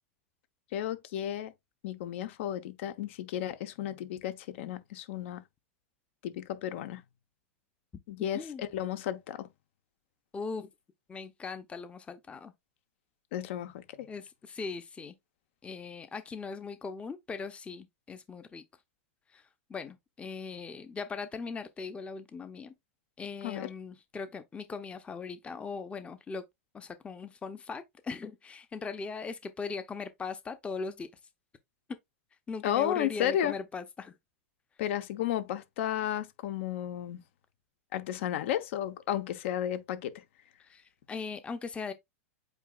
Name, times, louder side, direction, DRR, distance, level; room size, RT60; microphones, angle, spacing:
voice 1, 0.7-1.5 1.8-5.4 6.2-7.0 8.1-9.5 13.3-14.1 23.4-23.7 32.6-33.6 34.8-37.2 37.9-40.2, left 11 dB, 65° left, 0.9 m, -33 dB
voice 2, 8.3-8.7 10.3-10.7 11.1-12.5 14.1-15.1 15.6-18.6 19.3-19.4 19.7-22.7 23.2-26.4 26.7-31.1 32.5-34.1 40.6-41.9, left 4 dB, 15° left, 0.6 m, -39 dB
8.0 x 2.8 x 2.4 m
hypercardioid pair, 115°, 7 cm